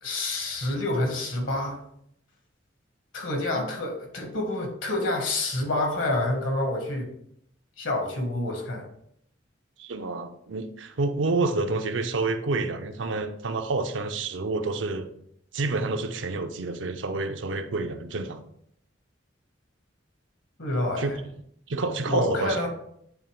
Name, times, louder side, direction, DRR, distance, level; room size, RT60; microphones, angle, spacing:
voice 1, 0.0-1.8 3.1-7.1 7.8-8.9 20.6-21.1 22.1-22.7, left 2 dB, 80° left, 2 dB, 1.8 m, -28 dB
voice 2, 9.8-15.1 15.5-18.4 21.0-21.2 21.7-22.6, right 3 dB, 75° right, 8 dB, 0.6 m, -28 dB
9.0 x 3.2 x 3.5 m, 0.71 s
head